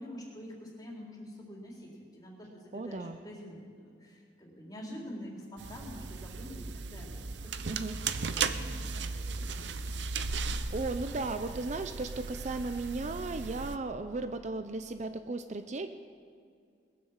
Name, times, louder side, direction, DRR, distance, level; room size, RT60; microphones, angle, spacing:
voice 1, 0.0-7.6 7.9-9.9, equal, 20° left, -3 dB, 3.8 m, -46 dB
voice 2, 2.7-3.2 7.7-8.0 10.7-15.9, right 3 dB, 40° right, 9 dB, 0.6 m, -35 dB
sound 1, 5.6-13.8, right 4 dB, 75° right, 0.7 m, -36 dB
20.0 x 9.5 x 7.3 m, 2.3 s
head